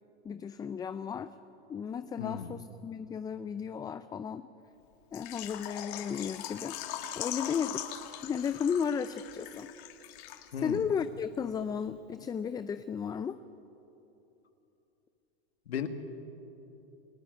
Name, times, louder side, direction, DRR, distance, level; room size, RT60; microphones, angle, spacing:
voice 1, 0.2-1.3 1.7-4.5 5.1-7.9 8.2-9.7 10.6-13.4, left 7 dB, 10° left, 12 dB, 0.5 m, -34 dB
voice 2, 2.2-2.6 10.5-10.9 15.7-15.9, left 8 dB, 85° left, 7 dB, 2.2 m, -35 dB
Water / Liquid, 5.1-10.8 11.0-11.1 11.6-11.7, left 12 dB, 45° left, 2.0 m, -41 dB
29.0 x 17.5 x 9.2 m, 3.0 s
hypercardioid pair, 125°, 31 cm